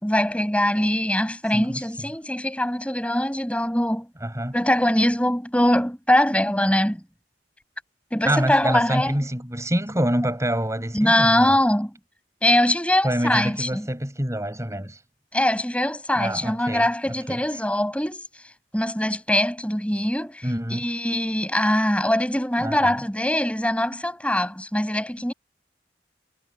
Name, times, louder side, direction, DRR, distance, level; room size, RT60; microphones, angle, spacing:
voice 1, 0.0-4.1 4.5-7.0 8.1-9.2 10.9-11.9 12.4-13.9 15.3-25.3, left 1 dB, 5° left, 6.5 m, -22 dB
voice 2, 1.5-2.1 4.2-4.6 8.2-11.6 13.0-15.0 16.2-17.4 20.4-20.9 22.6-23.0, right 1 dB, 15° right, 7.7 m, -27 dB
head